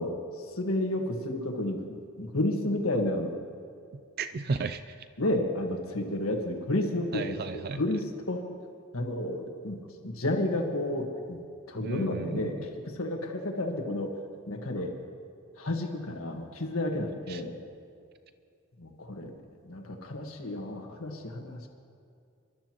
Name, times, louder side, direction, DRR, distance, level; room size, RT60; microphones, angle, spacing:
voice 1, 0.0-3.3 5.2-8.4 8.9-14.2 14.5-15.0 15.6-17.6 18.8-19.3 19.6-21.7, left 1 dB, 85° left, 2 dB, 1.6 m, -31 dB
voice 2, 3.9-5.1 7.1-7.8 11.8-12.7 17.3-17.4, right 4 dB, 45° right, 11 dB, 0.4 m, -34 dB
25.5 x 12.5 x 3.0 m, 2.3 s
head